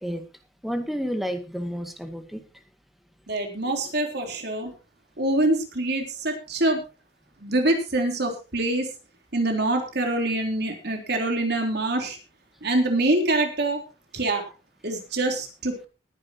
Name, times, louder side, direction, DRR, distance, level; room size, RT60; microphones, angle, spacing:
voice 1, 0.6-2.4, equal, ahead, 6 dB, 2.0 m, -30 dB
voice 2, 3.3-4.7 5.2-6.8 7.4-8.9 9.3-12.2 12.6-13.8 14.1-14.5 14.8-15.7, right 2 dB, 65° right, 4 dB, 3.6 m, -25 dB
20.0 x 10.5 x 3.0 m, 0.30 s
head